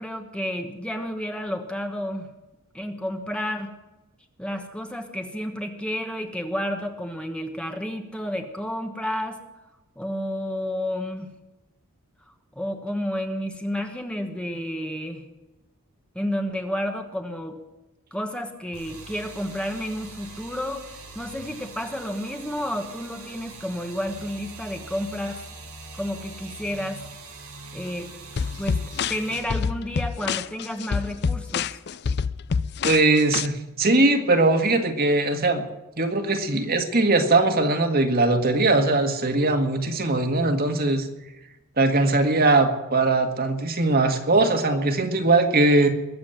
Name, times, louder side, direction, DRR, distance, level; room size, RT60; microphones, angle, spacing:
voice 1, 0.0-2.3 2.7-3.7 4.4-9.4 10.0-11.3 12.5-15.2 16.1-17.6 18.1-20.8 21.1-25.4 25.9-27.0 27.7-28.1 28.6-28.8 29.1-31.8, equal, 5° left, 4 dB, 1.2 m, -31 dB
sound 1, 18.7-29.4, right 3 dB, 85° right, 6.0 m, -42 dB
sound 2, 28.4-33.5, left 5 dB, 50° left, 0.5 m, -27 dB
voice 2, 32.8-35.6 36.0-41.1 41.8-45.9, right 2 dB, 45° right, 5 dB, 1.8 m, -20 dB
21.5 x 7.5 x 8.9 m, 1.0 s
head